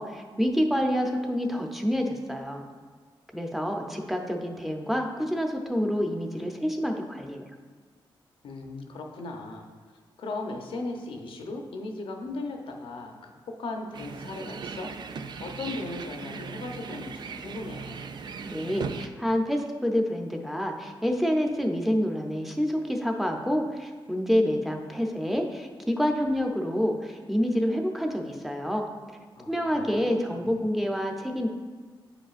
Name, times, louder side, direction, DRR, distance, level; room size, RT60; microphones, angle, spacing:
voice 1, 0.0-2.6 3.3-7.4 18.4-28.8 29.5-31.5, equal, ahead, 2 dB, 0.7 m, -27 dB
voice 2, 8.4-9.7 10.2-14.9 15.4-18.1 29.4-30.6, left 2 dB, 80° left, 3 dB, 0.8 m, -37 dB
sound 1, 13.9-19.1, right 5 dB, 55° right, 0.3 m, -38 dB
8.3 x 5.0 x 2.5 m, 1.5 s
cardioid pair, 95°, 9 cm